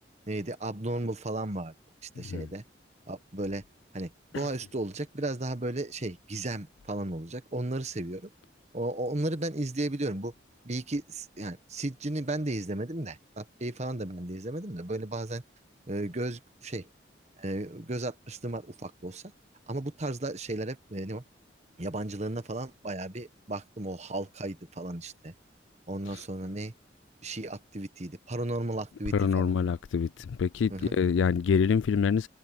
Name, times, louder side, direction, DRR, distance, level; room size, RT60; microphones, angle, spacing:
voice 1, 0.3-1.7 2.0-2.6 3.1-3.6 3.9-8.3 8.7-10.3 10.6-15.4 15.9-16.9 17.4-19.2 19.7-21.2 21.8-25.3 25.9-26.7 27.2-29.5 30.7-31.0, right 2 dB, 40° right, 1.3 m, -34 dB
voice 2, 2.2-2.5 4.3-4.5 26.1-26.2 29.1-32.3, left 6 dB, 90° left, 0.4 m, -26 dB
head